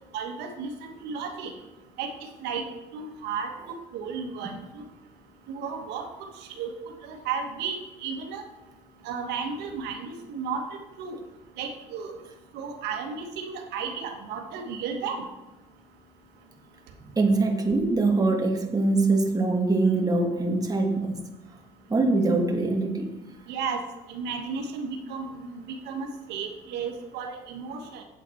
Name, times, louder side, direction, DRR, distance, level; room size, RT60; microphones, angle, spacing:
voice 1, 0.1-1.5 2.0-2.1 2.4-2.6 2.9-4.8 5.5-6.1 6.6-6.7 7.0-8.4 9.0-10.6 11.0-11.2 11.6-12.1 12.5-15.2 23.5-23.8 24.1-28.0, right 5 dB, 85° right, 4 dB, 1.3 m, -33 dB
voice 2, 17.1-21.2 21.9-23.1, right 3 dB, 20° right, 2 dB, 1.6 m, -23 dB
8.2 x 8.2 x 4.4 m, 1.0 s
cardioid pair, 110°, 17 cm